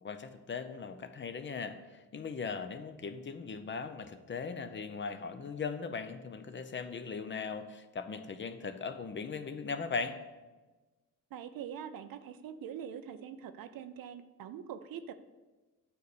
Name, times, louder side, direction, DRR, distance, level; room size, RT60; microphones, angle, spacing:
voice 1, 0.0-1.8 2.1-10.2, left 5 dB, 35° left, 9 dB, 0.7 m, -39 dB
voice 2, 11.3-15.1, right 8 dB, 80° right, 10 dB, 0.7 m, -43 dB
9.2 x 4.1 x 6.7 m, 1.2 s
cardioid pair, 105°, 34 cm